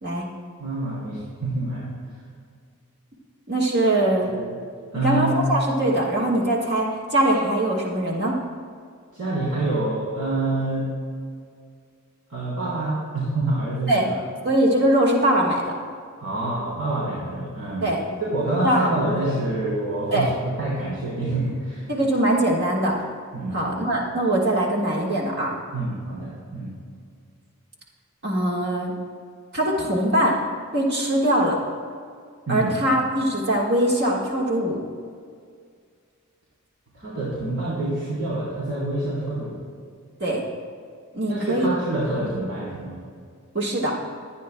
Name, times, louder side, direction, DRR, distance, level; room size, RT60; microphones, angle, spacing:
voice 1, 0.6-1.9 4.2-4.6 4.9-5.4 9.1-10.9 12.3-14.1 16.2-17.9 18.3-20.3 20.6-21.9 23.3-23.7 25.7-26.8 32.5-32.7 36.9-39.6 41.3-43.0, right 2 dB, 80° right, -8 dB, 3.3 m, -27 dB
voice 2, 3.5-4.3 4.9-8.4 13.9-14.1 14.4-15.6 17.8-18.0 18.6-18.9 20.1-20.3 21.9-23.0 23.5-25.6 28.2-28.9 29.5-30.3 30.7-31.6 32.5-34.8 40.2-40.4 41.1-41.7 43.5-43.9, right 1 dB, 50° right, -3 dB, 1.6 m, -22 dB
22.0 x 9.5 x 2.2 m, 2.1 s
head